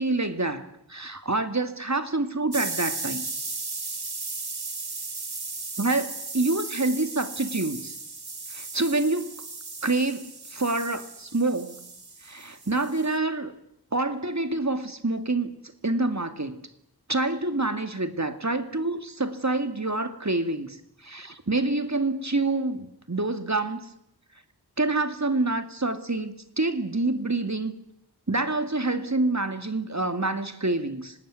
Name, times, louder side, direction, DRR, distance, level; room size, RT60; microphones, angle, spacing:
voice 1, 0.0-3.3 5.8-7.9 8.5-9.3 9.8-11.9 12.2-13.5 13.9-15.5 15.8-16.6 17.1-20.8 21.0-23.9 24.8-27.7 28.3-31.1, right 2 dB, 45° right, 10 dB, 2.3 m, -27 dB
sound 1, 2.5-13.1, right 3 dB, 80° right, 2.1 m, -36 dB
25.5 x 19.5 x 9.5 m, 0.78 s
wide cardioid pair, 40°, 38 cm